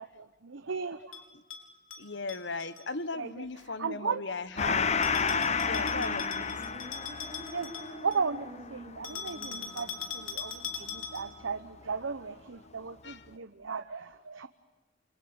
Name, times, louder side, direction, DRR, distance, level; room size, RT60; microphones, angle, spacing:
voice 1, 0.0-1.2 3.1-4.2 5.9-6.1 7.5-14.5, right 5 dB, 70° right, 10 dB, 0.9 m, -36 dB
Bell, 1.1-2.8 5.0-8.3 9.0-11.4, left 7 dB, 90° left, 4.1 m, -41 dB
voice 2, 2.0-4.9 5.6-6.5 8.9-9.0 13.0-13.2, left 3 dB, 60° left, 14 dB, 1.2 m, -37 dB
Gong, 4.6-11.5, left 5 dB, 35° left, 0.9 m, -32 dB
sound 1, 5.2-10.0, equal, 20° right, 5.8 m, -48 dB
29.0 x 23.0 x 8.8 m, 1.2 s
head